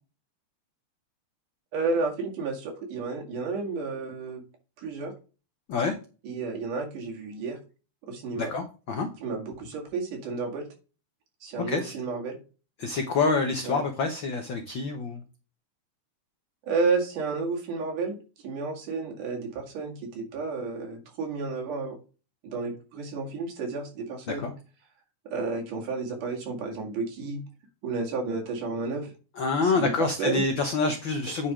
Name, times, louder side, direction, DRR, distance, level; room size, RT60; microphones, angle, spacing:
voice 1, 1.7-4.4 4.8-5.1 6.2-7.6 8.1-8.5 9.2-10.7 11.4-12.4 13.6-13.8 16.7-18.2 18.4-22.0 22.4-24.5 25.3-27.4 27.8-29.1 29.6-30.4, right 4 dB, 80° right, 0 dB, 3.6 m, -31 dB
voice 2, 8.4-9.1 11.7-11.9 12.8-15.2 24.3-24.5 29.4-31.5, left 4 dB, 85° left, 5 dB, 1.0 m, -27 dB
9.2 x 4.3 x 4.9 m, 0.33 s
omnidirectional pair, 3.6 m